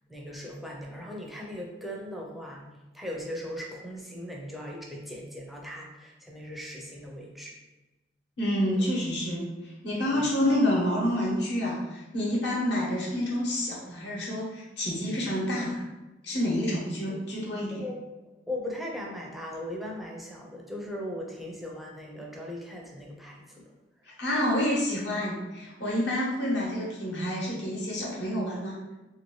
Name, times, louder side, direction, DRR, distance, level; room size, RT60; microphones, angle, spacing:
voice 1, 0.1-2.7 2.9-7.6 10.0-10.3 17.7-17.9 18.5-23.6, left 1 dB, ahead, -2 dB, 0.4 m, -38 dB
voice 2, 8.4-15.8 16.2-17.8 24.2-28.8, left 1 dB, 65° left, -4 dB, 1.0 m, -28 dB
2.9 x 2.7 x 3.0 m, 1.1 s
head